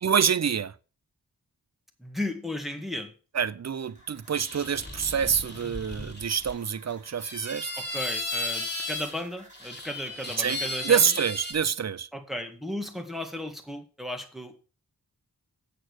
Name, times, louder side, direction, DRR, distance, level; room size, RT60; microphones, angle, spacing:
voice 1, 0.0-0.7 3.3-7.7 10.4-10.6 10.8-12.1, right 7 dB, 45° right, 0.5 m, -26 dB
voice 2, 2.0-3.1 7.8-11.1 12.1-14.5, left 1 dB, ahead, 1.7 m, -35 dB
sound 1, 3.8-10.9, right 1 dB, 20° right, 3.8 m, -55 dB
sound 2, 4.3-6.5 7.2-9.2 9.5-11.5, left 2 dB, 25° left, 3.0 m, -35 dB
7.7 x 6.7 x 6.2 m
wide cardioid pair, 85°, 38 cm